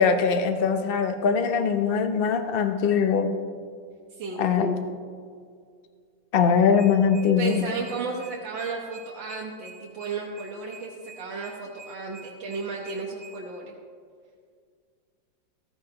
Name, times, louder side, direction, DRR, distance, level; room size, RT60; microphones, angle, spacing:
voice 1, 0.0-3.3 4.4-4.8 6.3-7.6, left 6 dB, 55° left, 7 dB, 0.6 m, -22 dB
sound 1, 6.7-13.3, right 5 dB, ahead, 1.9 m, -47 dB
voice 2, 7.4-13.7, right 4 dB, 85° right, -2 dB, 1.8 m, -34 dB
15.0 x 13.5 x 2.9 m, 2.1 s
omnidirectional pair, 2.0 m